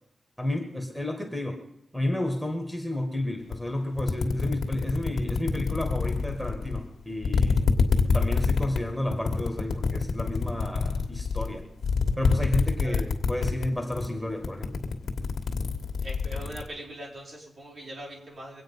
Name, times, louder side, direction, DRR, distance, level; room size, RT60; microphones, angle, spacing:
voice 1, 0.4-1.6 1.9-7.7 8.1-11.7 12.2-14.8, left 1 dB, ahead, 3 dB, 1.6 m, -31 dB
sound 1, 3.5-3.6 4.0-6.9 7.2-13.7 13.9-14.2 14.4-16.6, left 5 dB, 80° left, 1.5 m, -26 dB
voice 2, 16.0-18.6, equal, 55° right, -2 dB, 4.9 m, -41 dB
23.5 x 8.9 x 5.5 m, 0.80 s
wide cardioid pair, 175°, 0 cm